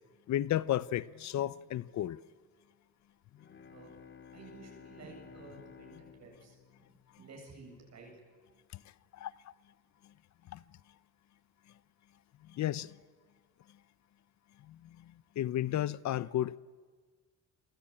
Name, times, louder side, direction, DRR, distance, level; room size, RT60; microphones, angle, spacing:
voice 1, 0.3-2.2 9.2-9.3 10.5-10.6 12.5-12.9 14.7-14.8 15.4-16.6, left 12 dB, 65° left, 0.7 m, -32 dB
Bowed string instrument, 3.3-7.9, left 7 dB, 40° left, 2.3 m, -55 dB
voice 2, 4.3-8.1, right 4 dB, 60° right, 8.0 m, -53 dB
28.0 x 23.0 x 8.9 m
cardioid pair, 90°, 30 cm